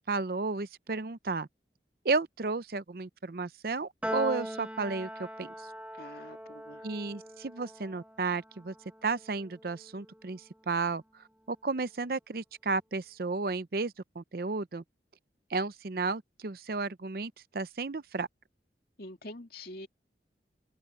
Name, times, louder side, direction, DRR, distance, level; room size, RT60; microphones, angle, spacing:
voice 1, 0.1-1.5 2.0-5.5 6.8-8.7 9.0-11.0 11.5-14.8 15.5-18.3, right 3 dB, 55° right, 0.6 m, -33 dB
Piano, 4.0-10.5, equal, 5° right, 0.9 m, -41 dB
voice 2, 5.9-6.9 19.0-19.9, left 1 dB, 55° left, 2.6 m, -45 dB
open air
head